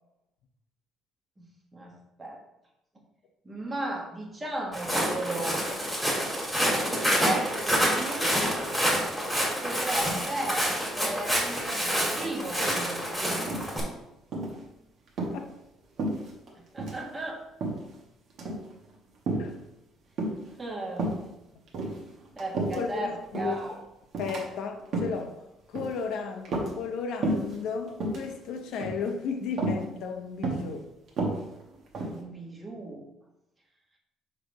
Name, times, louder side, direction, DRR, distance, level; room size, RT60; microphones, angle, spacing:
voice 1, 1.4-2.4 3.4-5.6 7.2-8.4 9.6-13.4 16.5-17.4 20.6-21.1 22.3-23.7 32.1-33.0, right 2 dB, 20° right, -1 dB, 1.4 m, -36 dB
Walk footsteps, 4.7-13.8, equal, ahead, 1.9 m, -27 dB
sound 1, 13.5-14.0 14.3-14.6 15.1-15.4 16.0-16.5 16.8-17.0 17.6-18.0 18.3-18.7 19.3-19.6 20.2-20.5 21.0-21.2 21.7-23.0 23.3-23.6 24.1-24.4 24.8-25.2 25.8-26.0 26.5-27.0 27.2-27.6 27.9-28.3 28.8-29.1 29.6-29.8 30.4-30.7 31.1-32.2, right 2 dB, 50° right, 1.5 m, -31 dB
voice 2, 22.7-23.6 24.2-30.9, left 5 dB, 70° left, 5 dB, 0.9 m, -34 dB
6.5 x 3.4 x 5.2 m, 0.88 s
cardioid pair, 145°, 0 cm